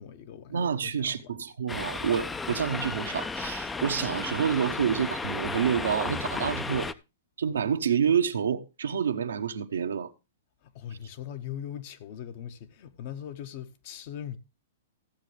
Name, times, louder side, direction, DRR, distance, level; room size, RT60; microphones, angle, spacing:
voice 1, 0.0-1.4 10.6-14.4, left 9 dB, 50° left, 1.0 m, -40 dB
voice 2, 0.5-6.9 7.4-10.1, right 7 dB, 85° right, 0.9 m, -28 dB
sound 1, 1.7-6.9, left 4 dB, 10° left, 0.4 m, -34 dB
14.5 x 7.7 x 3.2 m
hypercardioid pair, 130°, 0 cm